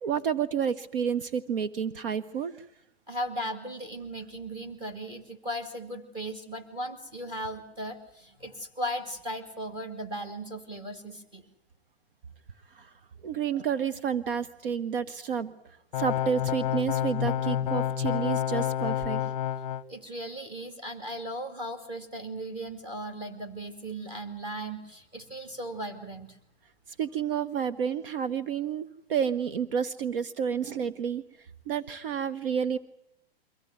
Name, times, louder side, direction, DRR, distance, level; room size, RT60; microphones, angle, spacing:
voice 1, 0.0-2.7 12.7-12.9 13.2-15.5 16.0-19.3 27.0-31.2 31.7-32.8, right 7 dB, 60° right, 15 dB, 1.2 m, -30 dB
voice 2, 3.1-11.5 19.9-26.4, right 1 dB, 15° right, 6 dB, 2.5 m, -37 dB
sound 1, 15.9-19.8, left 10 dB, 35° left, 0.9 m, -29 dB
24.0 x 16.0 x 9.1 m, 0.80 s
supercardioid pair, 175°, 31 cm